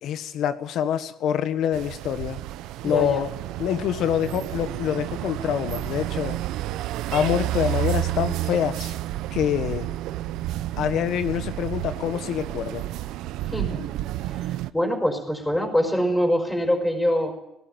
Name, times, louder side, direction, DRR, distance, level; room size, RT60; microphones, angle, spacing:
voice 1, 0.0-2.4 2.8-3.3 3.6-6.4 7.1-8.9 9.3-9.9 10.8-12.8, left 9 dB, 70° left, 11 dB, 1.4 m, -26 dB
sound 1, 1.7-14.7, right 15 dB, 90° right, 0.7 m, -30 dB
voice 2, 2.8-3.2 13.5-13.8 14.3-17.3, equal, 5° left, 3 dB, 5.0 m, -24 dB
18.5 x 18.0 x 9.2 m, 0.87 s
cardioid pair, 120°, 0 cm